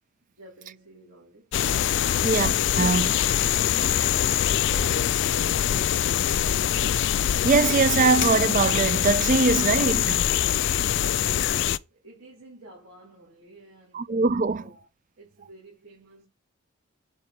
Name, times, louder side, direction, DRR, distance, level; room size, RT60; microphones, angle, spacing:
voice 1, 0.3-1.6 2.0-2.3 3.7-6.2 10.7-14.1 14.5-14.9 15.2-16.3, right 1 dB, 85° right, 4.4 m, -50 dB
sound 1, 1.5-11.8, left 10 dB, 55° left, 0.3 m, -23 dB
voice 2, 2.2-3.1 7.4-10.3 13.9-14.6, right 4 dB, 35° right, 0.4 m, -22 dB
8.1 x 4.6 x 4.4 m
head